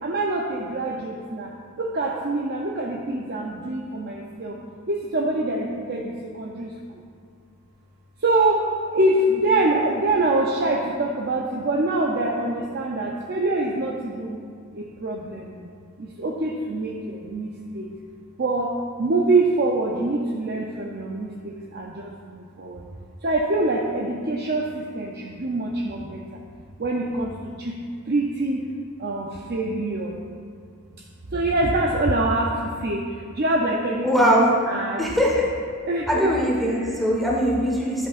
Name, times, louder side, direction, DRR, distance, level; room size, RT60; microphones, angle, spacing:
voice 1, 0.0-1.5 1.8-4.6 4.9-7.0 8.2-14.4 14.7-15.7 16.0-17.9 18.4-18.7 19.0-22.9 23.2-26.4 26.8-27.8 28.1-28.7 29.0-30.2 31.3-35.1 35.9-36.1 36.6-37.0, right 2 dB, 45° right, -1 dB, 0.6 m, -25 dB
voice 2, 34.0-34.5 35.0-35.5 36.1-38.1, equal, ahead, -4 dB, 1.3 m, -21 dB
11.5 x 8.0 x 2.5 m, 2.2 s
head